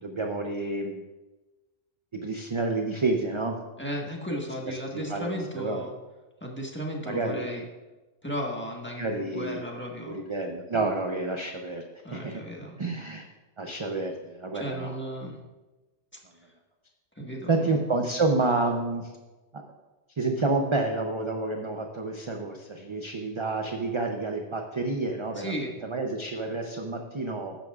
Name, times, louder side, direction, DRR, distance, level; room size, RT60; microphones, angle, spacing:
voice 1, 0.0-1.0 2.1-3.6 4.6-5.8 7.1-7.5 9.0-9.6 10.1-11.8 12.1-12.4 12.8-13.3 13.6-15.0 17.5-19.1 19.5-19.6 20.2-25.5 25.8-27.6, right 3 dB, 30° right, 3 dB, 0.6 m, -29 dB
voice 2, 3.8-5.9 6.4-7.6 8.2-10.2 12.0-12.8 14.5-15.4 17.2-17.8 25.3-25.7, equal, 10° left, -2 dB, 1.4 m, -35 dB
13.0 x 10.5 x 2.4 m, 1.1 s
omnidirectional pair, 1.2 m